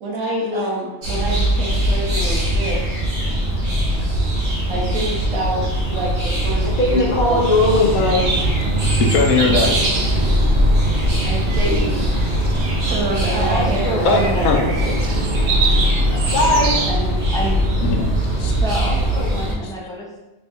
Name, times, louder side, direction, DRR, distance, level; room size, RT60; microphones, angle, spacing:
voice 1, 0.0-3.1 4.7-7.5 11.5-12.1 12.8-14.6, right 1 dB, 85° right, -3 dB, 1.1 m, -26 dB
sound 1, 1.0-19.5, equal, 40° right, 1.0 m, -20 dB
voice 2, 6.6-8.4 16.3-16.9, left 2 dB, 55° left, -1 dB, 0.5 m, -18 dB
sound 2, 7.0-16.9, right 3 dB, 60° right, 0.5 m, -26 dB
voice 3, 9.0-10.1 14.0-14.6 17.8-18.1 18.4-18.5 19.6-19.7, left 4 dB, 85° left, 3 dB, 1.0 m, -20 dB
voice 4, 11.2-11.9 13.3-15.3 16.9-17.7 18.5-20.2, equal, 5° left, -6 dB, 0.4 m, -28 dB
3.3 x 2.5 x 3.5 m, 1.0 s
omnidirectional pair, 1.4 m